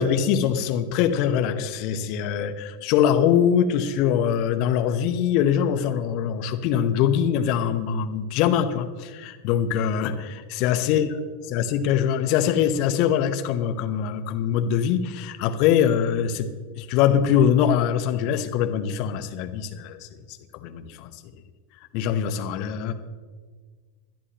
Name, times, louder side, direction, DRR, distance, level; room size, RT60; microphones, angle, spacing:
voice 1, 0.0-11.1 11.5-21.2 21.9-22.9, left 9 dB, 45° left, 9 dB, 0.9 m, -23 dB
20.5 x 11.0 x 3.0 m, 1.5 s
figure-of-eight pair, 90°, 0 cm